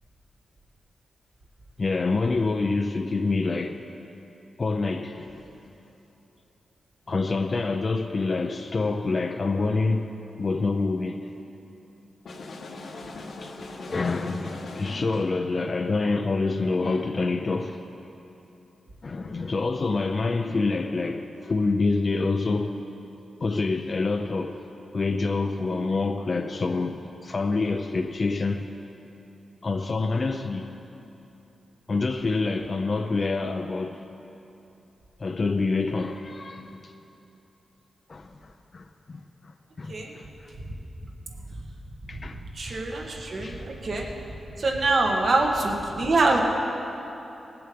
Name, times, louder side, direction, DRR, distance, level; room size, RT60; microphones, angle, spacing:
voice 1, 1.8-3.9 4.6-5.5 7.1-10.1 10.4-11.4 13.4-13.5 13.9-17.8 19.0-22.8 23.4-24.6 24.9-28.7 29.6-30.7 31.9-34.0 35.2-36.9 38.1-40.5 42.1-43.7, left 3 dB, 45° left, 0.5 m, -27 dB
sound 1, 12.2-15.4, left 2 dB, 70° left, 1.2 m, -39 dB
voice 2, 42.5-44.1 44.6-46.4, right 2 dB, 60° right, 1.6 m, -24 dB
19.0 x 7.7 x 5.2 m
cardioid pair, 85°, 0 cm